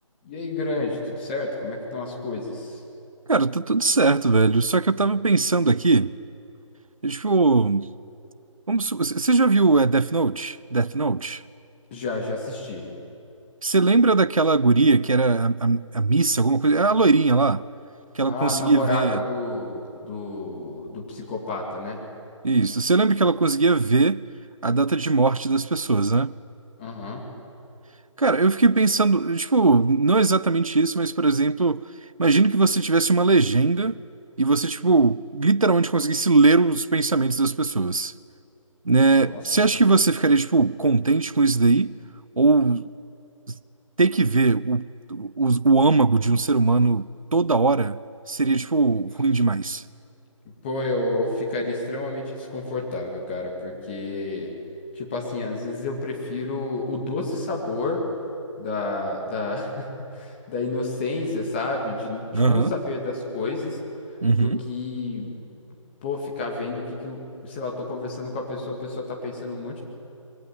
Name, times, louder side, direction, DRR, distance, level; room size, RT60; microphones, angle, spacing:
voice 1, 0.2-2.8 11.9-12.9 18.3-22.0 26.8-27.2 39.1-39.4 50.6-54.5 54.9-58.1 58.6-63.8 64.3-65.4 66.0-69.8, left 2 dB, 20° left, 2.4 m, -30 dB
voice 2, 3.3-6.1 7.0-7.9 8.7-11.4 13.6-17.6 18.1-19.2 22.4-24.2 24.6-26.4 28.2-31.8 32.2-34.0 34.4-38.1 38.9-41.9 42.4-42.9 44.0-48.0 48.3-49.8 62.3-62.7 64.2-64.6, right 3 dB, 85° right, 0.6 m, -20 dB
22.5 x 18.0 x 7.7 m
figure-of-eight pair, 150°, 17 cm